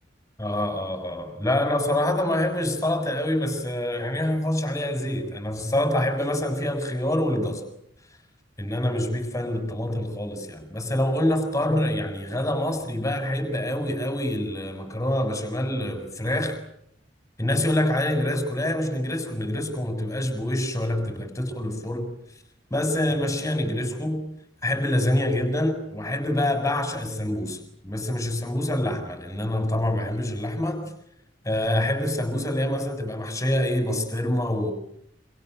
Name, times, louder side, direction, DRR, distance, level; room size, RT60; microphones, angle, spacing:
voice 1, 0.4-7.6 8.6-16.6 17.4-22.1 22.7-24.2 24.6-30.8 31.4-34.7, left 1 dB, 15° left, 6.7 m, -26 dB
27.5 x 27.0 x 7.9 m
head